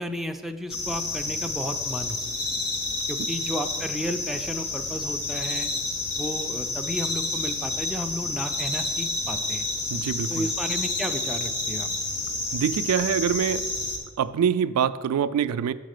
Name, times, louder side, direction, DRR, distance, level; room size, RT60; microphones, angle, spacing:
voice 1, 0.0-2.2 3.1-5.7 6.2-9.7 10.3-11.9, equal, ahead, 4 dB, 0.3 m, -33 dB
sound 1, 0.7-14.0, left 2 dB, 90° left, 1.1 m, -29 dB
voice 2, 9.9-10.5 12.5-13.6 14.2-15.7, right 8 dB, 80° right, 16 dB, 0.3 m, -24 dB
6.5 x 4.0 x 6.5 m, 1.5 s
head